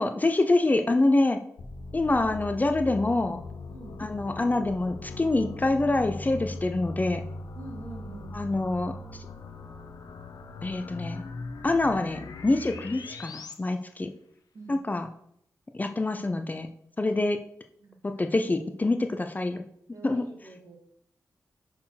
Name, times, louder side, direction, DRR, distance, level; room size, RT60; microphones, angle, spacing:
voice 1, 0.0-1.4 1.9-3.4 4.0-7.2 8.3-9.0 10.6-11.2 11.6-14.1 14.7-15.1 15.7-16.7 17.0-17.4 18.0-19.7 20.0-20.2, left 2 dB, 25° left, 7 dB, 0.5 m, -26 dB
sound 1, 1.6-13.5, left 3 dB, 75° left, 0.7 m, -40 dB
voice 2, 3.7-4.1 7.6-8.3 14.5-14.8 17.0-17.1 17.8-18.3 19.9-20.8, right 2 dB, 60° right, 0 dB, 2.1 m, -45 dB
5.8 x 4.4 x 5.7 m, 0.71 s
wide cardioid pair, 85°, 7 cm